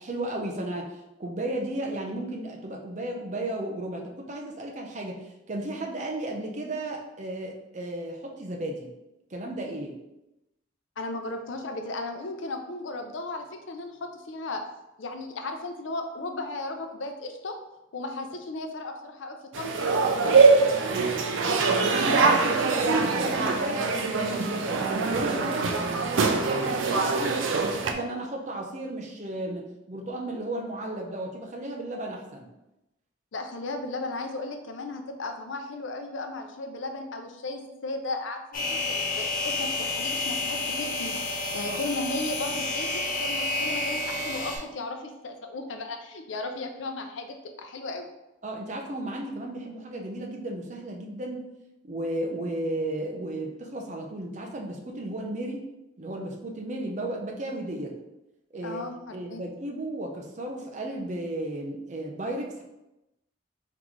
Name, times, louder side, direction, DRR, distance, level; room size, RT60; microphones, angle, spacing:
voice 1, 0.0-8.9 9.3-10.0 20.9-32.5 41.7-41.8 48.4-51.4 51.8-55.7 56.0-58.0 58.5-58.8 59.1-62.6, right 1 dB, 40° right, 1 dB, 0.6 m, -34 dB
voice 2, 11.0-14.6 15.0-17.6 17.9-20.3 25.5-25.8 33.3-41.2 41.5-48.1 58.6-59.4, left 2 dB, 80° left, 6 dB, 0.5 m, -35 dB
sound 1, 19.5-27.9, right 4 dB, 85° right, 0.5 m, -23 dB
sound 2, 38.5-44.6, left 2 dB, 45° left, 0.8 m, -30 dB
3.7 x 3.7 x 3.1 m, 0.93 s
head